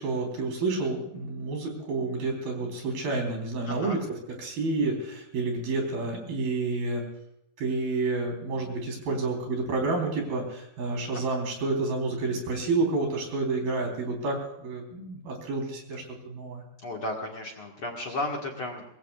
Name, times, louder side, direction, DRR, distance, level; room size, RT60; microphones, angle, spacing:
voice 1, 0.0-7.0 7.6-16.6, right 3 dB, 75° right, 2 dB, 5.8 m, -29 dB
voice 2, 3.7-4.0 11.1-11.2 16.8-18.9, left 2 dB, 45° left, 0 dB, 2.1 m, -34 dB
24.0 x 20.5 x 2.4 m, 0.81 s
omnidirectional pair, 4.3 m